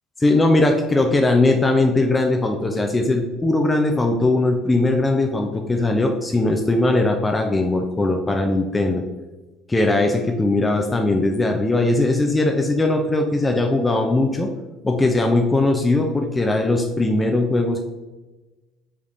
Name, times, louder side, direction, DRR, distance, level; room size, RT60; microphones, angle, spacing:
voice 1, 0.2-9.0 9.7-14.5 14.8-17.8, left 2 dB, 15° left, 3 dB, 0.4 m, -19 dB
3.7 x 3.2 x 2.6 m, 1.1 s
figure-of-eight pair, 55°, 0 cm